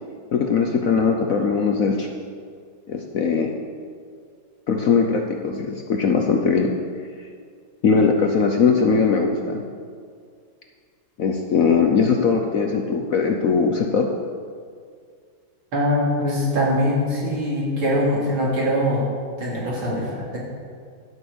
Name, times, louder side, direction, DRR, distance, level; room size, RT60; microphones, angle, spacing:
voice 1, 0.3-2.1 2.9-3.5 4.7-6.7 7.8-9.6 11.2-14.1, left 5 dB, 60° left, 3 dB, 0.9 m, -20 dB
voice 2, 15.7-19.0 19.4-20.4, equal, 80° right, -5 dB, 3.7 m, -22 dB
12.5 x 6.3 x 7.9 m, 2.1 s
omnidirectional pair, 2.2 m